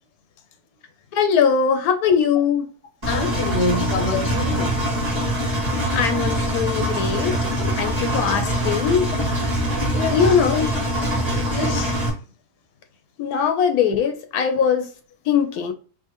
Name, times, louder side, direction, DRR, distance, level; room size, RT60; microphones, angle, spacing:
voice 1, 1.1-2.7 5.9-7.5 7.8-9.1 10.1-10.8 13.2-14.9 15.3-15.7, left 7 dB, 75° left, 1.1 m, -21 dB
Engine, 3.0-12.1, equal, 20° right, 1.5 m, -23 dB
voice 2, 3.1-4.8 7.6-7.7 9.9-10.2 11.5-12.0, left 2 dB, 50° left, 0.8 m, -26 dB
4.7 x 2.7 x 2.9 m
omnidirectional pair, 1.7 m